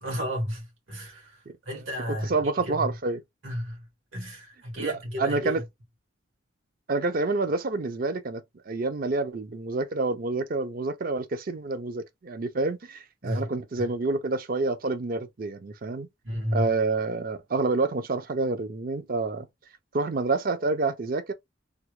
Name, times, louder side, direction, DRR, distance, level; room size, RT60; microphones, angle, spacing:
voice 1, 0.0-2.3 2.6-2.9 3.4-3.8 4.1-5.5 13.2-13.5 16.2-16.7, equal, 85° right, 1.9 m, -32 dB
voice 2, 2.1-3.2 4.8-5.6 6.9-16.1 16.5-19.5 19.9-21.3, right 3 dB, 45° right, 0.5 m, -28 dB
3.5 x 2.1 x 3.0 m
head